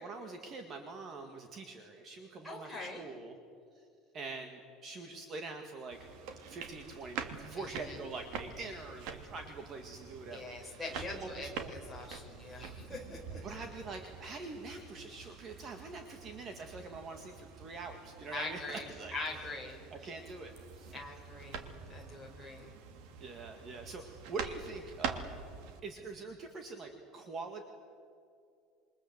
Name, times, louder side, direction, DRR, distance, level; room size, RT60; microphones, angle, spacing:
voice 1, 0.0-3.4 3.7-3.9 4.1-6.0 6.5-11.7 13.4-19.5 19.9-20.9 23.2-25.4 25.8-27.6, right 3 dB, 30° right, 5 dB, 1.9 m, -44 dB
voice 2, 2.4-3.1 7.6-8.0 10.3-13.4 18.3-20.1 20.9-21.6 21.9-22.7, left 2 dB, ahead, 0 dB, 5.2 m, -43 dB
sound 1, 5.9-25.8, right 6 dB, 65° right, 2.6 m, -46 dB
28.0 x 23.5 x 8.0 m, 2.3 s
cardioid pair, 170°, 0 cm